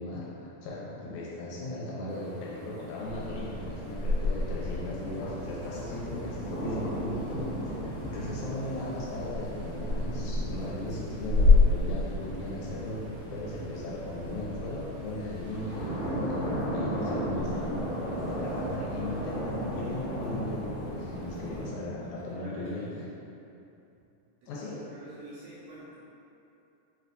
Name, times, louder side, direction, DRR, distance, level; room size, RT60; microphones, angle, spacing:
voice 1, 0.0-13.0 13.3-23.0 24.5-24.8, left 2 dB, 75° left, -5 dB, 2.0 m, -37 dB
sound 1, 2.1-21.7, right 1 dB, 45° right, 1.8 m, -37 dB
sound 2, 3.0-21.7, left 3 dB, 40° left, 1.4 m, -32 dB
voice 2, 5.6-6.0 8.1-8.4 21.5-22.9 24.4-26.0, right 2 dB, 80° right, -7 dB, 1.7 m, -49 dB
4.8 x 3.3 x 2.5 m, 2.8 s
omnidirectional pair, 3.6 m